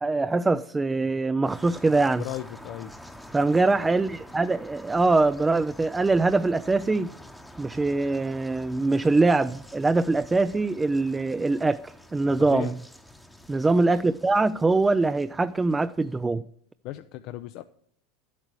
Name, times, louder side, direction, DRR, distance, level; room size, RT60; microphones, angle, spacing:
voice 1, 0.0-2.2 3.3-7.1 7.6-12.8 13.5-16.4, right 3 dB, 15° right, 0.4 m, -23 dB
sound 1, 1.4-16.2, equal, ahead, 0.9 m, -47 dB
voice 2, 2.2-2.9 12.2-12.8 16.8-17.6, left 14 dB, 60° left, 0.5 m, -36 dB
11.0 x 8.2 x 4.7 m
hypercardioid pair, 95°, 0 cm